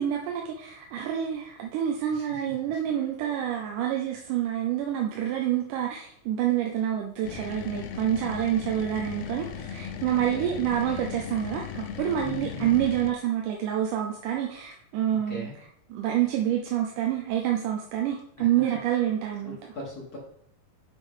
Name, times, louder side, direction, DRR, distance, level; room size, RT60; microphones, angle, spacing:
voice 1, 0.0-15.5 15.9-19.6, right 10 dB, 90° right, 1 dB, 2.3 m, -27 dB
voice 2, 2.1-2.8 3.2-3.3 10.1-10.6 12.2-12.8 15.3-15.6 18.4-18.6 19.4-20.2, left 2 dB, 45° left, -2 dB, 1.3 m, -40 dB
sound 1, 7.2-13.1, left 7 dB, 75° left, 1.5 m, -37 dB
8.9 x 6.1 x 3.7 m, 0.67 s
omnidirectional pair, 3.6 m